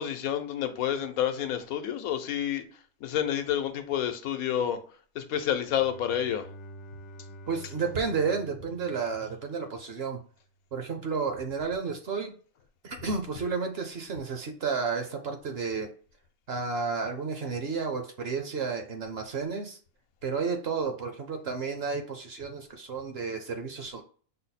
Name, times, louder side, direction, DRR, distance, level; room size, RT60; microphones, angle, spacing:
voice 1, 0.0-2.6 3.0-4.8 5.1-6.4, left 10 dB, 85° left, 1.1 m, -29 dB
Bowed string instrument, 5.6-10.1, right 1 dB, 65° left, 0.8 m, -47 dB
voice 2, 7.5-10.2 10.7-12.3 12.8-15.9 16.5-19.8 20.2-24.0, right 5 dB, 55° right, 0.8 m, -32 dB
5.6 x 2.1 x 4.1 m
omnidirectional pair, 1.5 m